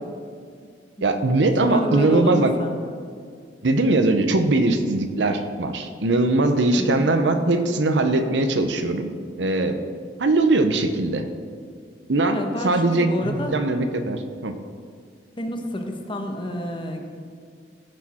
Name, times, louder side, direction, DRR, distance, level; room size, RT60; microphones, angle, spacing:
voice 1, 1.0-2.5 3.6-9.1 9.4-9.8 10.2-11.3 12.1-14.5, right 2 dB, 85° right, 7 dB, 0.8 m, -21 dB
voice 2, 1.6-2.8 6.8-7.1 12.3-13.6 15.4-17.1, equal, 30° left, 3 dB, 1.1 m, -29 dB
15.0 x 6.4 x 4.3 m, 2.1 s
head